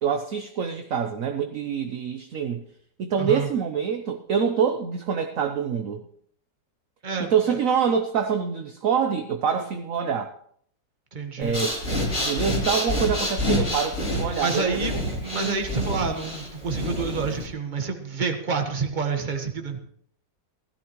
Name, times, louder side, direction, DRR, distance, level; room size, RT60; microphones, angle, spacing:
voice 1, 0.0-2.6 3.0-6.0 7.2-10.3 11.4-11.8 12.1-15.6, right 7 dB, 60° right, 6 dB, 1.0 m, -26 dB
voice 2, 3.2-3.5 7.0-7.6 11.1-11.6 14.4-14.9 15.2-19.8, right 5 dB, 30° right, 5 dB, 1.4 m, -28 dB
Breathing, 11.4-17.5, left 1 dB, 40° left, 3.7 m, -28 dB
16.5 x 14.0 x 3.1 m, 0.63 s
omnidirectional pair, 2.0 m